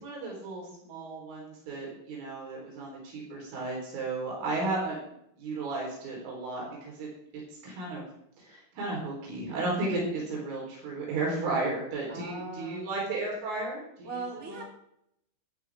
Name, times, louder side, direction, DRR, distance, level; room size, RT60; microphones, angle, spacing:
voice 1, 0.0-5.0 5.4-7.1 7.6-8.0 8.4-14.1 14.5-14.6, right 2 dB, 70° right, -3 dB, 6.3 m, -34 dB
voice 2, 12.1-12.9 14.0-14.6, right 3 dB, 25° right, -1 dB, 1.4 m, -39 dB
13.5 x 12.0 x 3.6 m, 0.74 s
omnidirectional pair, 6.0 m